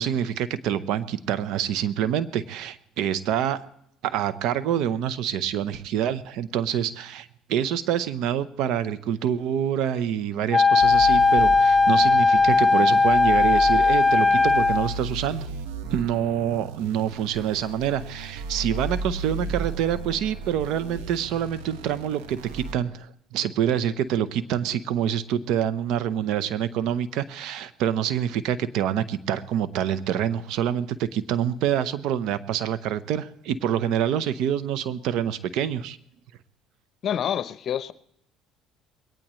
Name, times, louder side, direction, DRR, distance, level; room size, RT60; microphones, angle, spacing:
voice 1, 0.0-3.6 4.0-15.5 15.9-36.0, right 9 dB, 75° right, 0.9 m, -26 dB
Wind instrument woodwind instrument, 10.5-14.9, left 4 dB, 15° left, 0.5 m, -18 dB
sound 1, 10.8-22.7, right 3 dB, 90° right, 1.3 m, -35 dB
voice 2, 37.0-37.9, left 9 dB, 55° left, 0.8 m, -27 dB
21.5 x 18.5 x 3.2 m
supercardioid pair, 80°, 0 cm